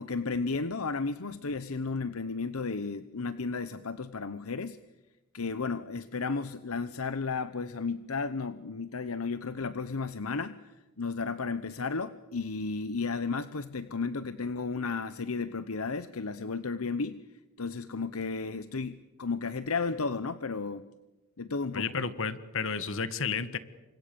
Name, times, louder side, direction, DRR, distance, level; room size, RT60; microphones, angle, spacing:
voice 1, 0.0-4.8 5.3-10.6 11.0-17.2 17.6-20.8 21.4-21.9, left 4 dB, 80° left, 12 dB, 0.9 m, -33 dB
voice 2, 21.7-23.6, left 5 dB, 65° left, 13 dB, 1.7 m, -32 dB
29.0 x 25.5 x 6.9 m, 1.1 s
head